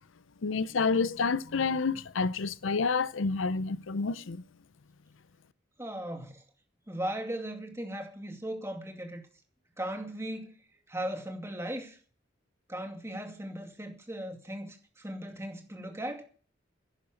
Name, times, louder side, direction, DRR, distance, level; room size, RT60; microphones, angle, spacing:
voice 1, 0.4-4.4, left 4 dB, 80° left, 0.6 m, -29 dB
voice 2, 5.8-6.4 6.9-9.2 9.8-10.5 10.9-12.0 12.7-16.3, right 1 dB, 15° right, 2.3 m, -37 dB
11.5 x 10.5 x 7.8 m
head